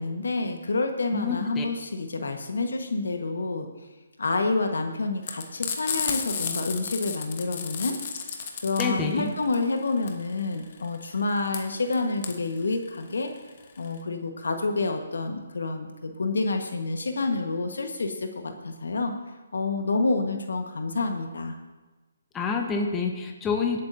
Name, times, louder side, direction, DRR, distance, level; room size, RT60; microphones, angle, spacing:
voice 1, 0.0-3.7 4.2-8.0 8.6-13.3 13.8-19.1 19.5-21.5, left 3 dB, 80° left, 5 dB, 1.4 m, -28 dB
voice 2, 1.1-1.6 8.8-9.3 22.3-23.8, left 4 dB, 15° left, 2 dB, 1.1 m, -27 dB
Frying (food), 5.2-14.0, left 6 dB, 45° left, 1.2 m, -33 dB
23.5 x 8.4 x 2.7 m, 1.2 s
hypercardioid pair, 150°, 0 cm